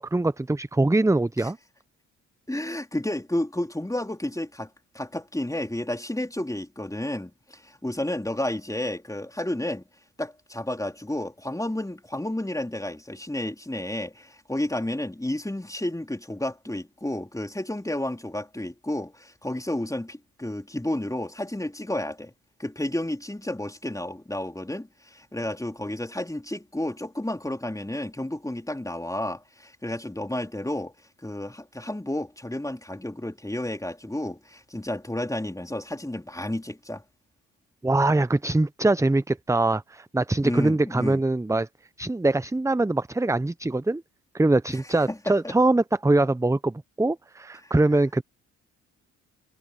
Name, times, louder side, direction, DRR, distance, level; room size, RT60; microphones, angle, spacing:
voice 1, 0.0-1.6 37.8-41.7 42.0-44.0 44.3-48.2, right 2 dB, 10° right, 0.8 m, -23 dB
voice 2, 2.5-4.7 4.9-9.8 10.2-22.3 22.6-30.9 31.2-37.0 40.4-41.2 44.7-44.8 45.1-45.5 47.6-47.7, left 1 dB, 10° left, 3.9 m, -31 dB
hypercardioid pair, 45°, 38 cm